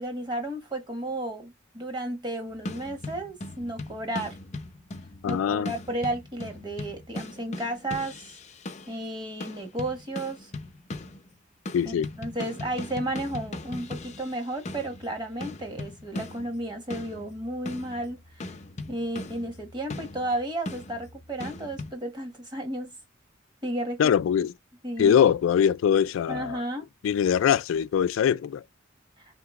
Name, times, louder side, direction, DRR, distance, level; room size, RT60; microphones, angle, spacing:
voice 1, 0.0-4.4 5.3-8.2 8.9-10.5 11.8-18.5 18.9-23.0 23.6-24.1 24.8-25.2 26.3-26.9, right 1 dB, 20° right, 1.3 m, -33 dB
sound 1, 2.5-9.0 9.4-11.4 11.6-21.9, left 2 dB, 35° left, 0.6 m, -39 dB
voice 2, 5.2-5.7 11.7-12.1 24.0-24.5 25.0-26.6 27.0-28.6, left 8 dB, 80° left, 0.3 m, -22 dB
3.8 x 2.9 x 3.5 m
head